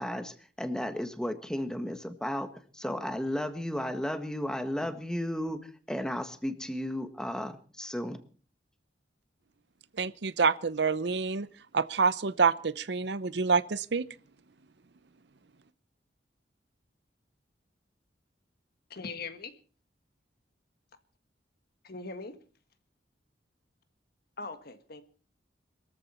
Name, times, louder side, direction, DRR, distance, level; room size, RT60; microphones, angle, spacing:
voice 1, 0.0-5.6 5.9-8.2, equal, 5° left, 9 dB, 1.5 m, -34 dB
voice 2, 10.0-11.5 11.7-14.1, right 5 dB, 65° right, 16 dB, 0.7 m, -27 dB
voice 3, 18.9-19.5 21.8-22.4 24.4-25.0, left 4 dB, 55° left, 10 dB, 1.6 m, -40 dB
22.5 x 14.0 x 4.4 m, 0.39 s
head